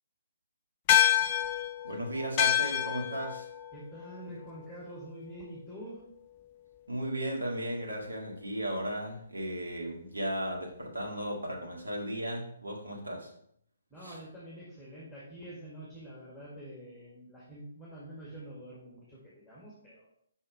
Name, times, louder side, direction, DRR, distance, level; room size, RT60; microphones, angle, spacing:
sound 1, 0.9-5.6, left 11 dB, 30° left, 0.5 m, -29 dB
voice 1, 1.8-3.5 6.9-13.3 14.0-14.2, right 1 dB, 75° right, 0 dB, 2.0 m, -35 dB
voice 2, 3.7-6.0 13.9-20.1, right 1 dB, ahead, -7 dB, 2.0 m, -46 dB
5.5 x 5.5 x 4.8 m, 0.69 s
figure-of-eight pair, 130°, 0 cm